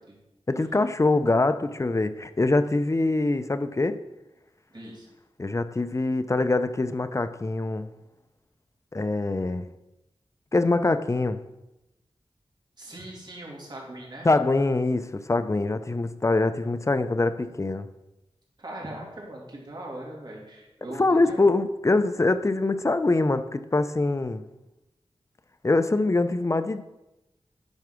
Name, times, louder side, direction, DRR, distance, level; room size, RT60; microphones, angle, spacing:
voice 1, 0.5-4.0 5.4-7.9 8.9-9.7 10.5-11.4 14.2-17.9 21.0-24.5 25.6-26.8, left 2 dB, 30° left, 0.5 m, -24 dB
voice 2, 4.7-5.1 12.8-14.3 18.6-21.4, right 1 dB, 45° right, 2.9 m, -40 dB
10.5 x 4.7 x 6.2 m
wide cardioid pair, 80°, 10 cm